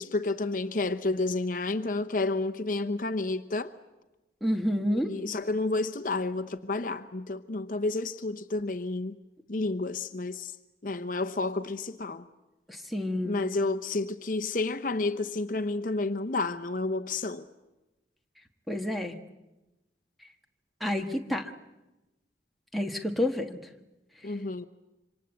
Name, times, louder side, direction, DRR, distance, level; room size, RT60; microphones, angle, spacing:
voice 1, 0.0-3.7 5.1-9.2 9.5-10.5 10.8-12.3 13.2-17.5 24.2-24.7, left 3 dB, 45° left, 9 dB, 0.9 m, -30 dB
voice 2, 4.4-5.1 12.7-13.4 18.7-19.2 20.8-21.4 22.7-23.6, left 1 dB, ahead, 5 dB, 1.5 m, -29 dB
26.5 x 25.5 x 8.2 m, 1.0 s
head